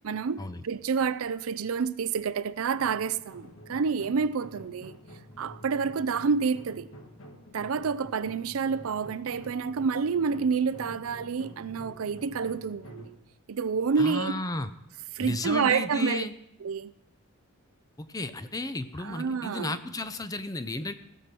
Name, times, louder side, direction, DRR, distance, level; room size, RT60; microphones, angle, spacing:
voice 1, 0.0-5.0 5.4-6.9 7.5-13.2 13.5-14.4 15.1-16.2 16.6-16.9 19.0-19.8, right 5 dB, 70° right, 0.5 m, -28 dB
sound 1, 2.7-13.1, equal, 65° left, 1.5 m, -48 dB
voice 2, 14.0-14.7 15.2-16.3 18.0-20.9, left 2 dB, 15° left, 0.5 m, -33 dB
16.5 x 5.9 x 6.8 m
head